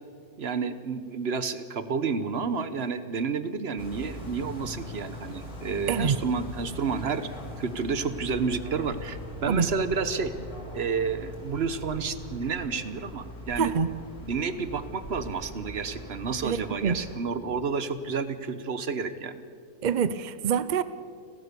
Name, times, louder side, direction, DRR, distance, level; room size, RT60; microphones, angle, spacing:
voice 1, 0.4-7.3 7.6-10.3 10.7-13.7 14.2-19.4, right 5 dB, 45° right, 12 dB, 1.1 m, -30 dB
sound 1, 3.8-17.2, equal, 70° left, 4.4 m, -41 dB
voice 2, 13.6-13.9 16.4-17.0 19.8-20.8, right 7 dB, 65° right, 14 dB, 0.4 m, -25 dB
30.0 x 13.5 x 6.9 m, 2.2 s
omnidirectional pair, 1.6 m